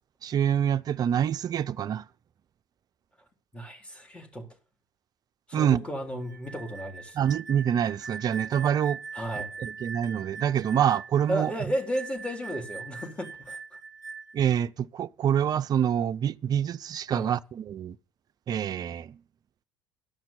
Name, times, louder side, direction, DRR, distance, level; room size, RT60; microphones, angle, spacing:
voice 1, 0.2-2.1 5.5-5.8 7.1-9.0 9.6-11.5 14.3-18.0 18.5-19.2, right 9 dB, 40° right, 0.6 m, -26 dB
voice 2, 3.5-4.5 5.5-7.2 9.1-9.5 11.3-13.6 17.1-17.3, equal, 10° left, 4.0 m, -33 dB
sound 1, 6.3-14.5, right 5 dB, 90° right, 0.6 m, -42 dB
12.5 x 5.9 x 9.0 m
figure-of-eight pair, 60°, 10 cm